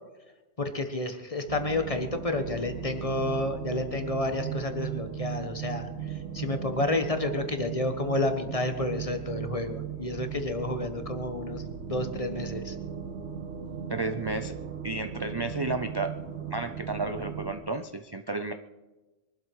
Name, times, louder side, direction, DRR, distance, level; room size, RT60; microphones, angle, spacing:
voice 1, 0.6-11.6 11.9-12.8, left 2 dB, 30° left, 7 dB, 1.4 m, -30 dB
sound 1, 1.5-17.5, right 8 dB, 65° right, 1.7 m, -37 dB
voice 2, 13.9-14.6 14.8-16.2 16.5-18.5, right 2 dB, 30° right, 7 dB, 0.5 m, -32 dB
23.0 x 12.0 x 4.9 m, 1.2 s
omnidirectional pair, 1.3 m